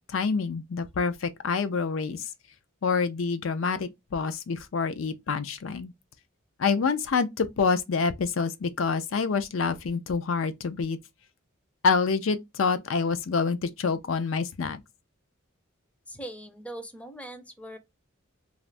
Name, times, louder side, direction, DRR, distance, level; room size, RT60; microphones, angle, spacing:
voice 1, 0.1-2.2 2.8-5.9 6.6-11.0 11.8-14.8, left 5 dB, 70° left, 0.5 m, -27 dB
voice 2, 16.1-17.8, right 1 dB, 5° left, 0.5 m, -41 dB
2.5 x 2.5 x 3.2 m
head